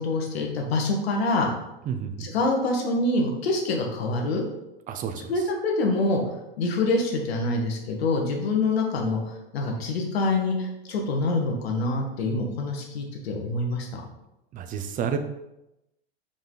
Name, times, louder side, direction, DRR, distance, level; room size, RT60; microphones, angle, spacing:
voice 1, 0.0-1.5 2.2-4.4 5.3-6.2 6.6-14.0, left 2 dB, 75° left, 1 dB, 1.7 m, -26 dB
voice 2, 1.9-2.3 4.9-5.3 14.5-15.2, right 7 dB, 25° right, 7 dB, 0.7 m, -30 dB
5.3 x 5.0 x 3.9 m, 0.91 s
hypercardioid pair, 115°, 31 cm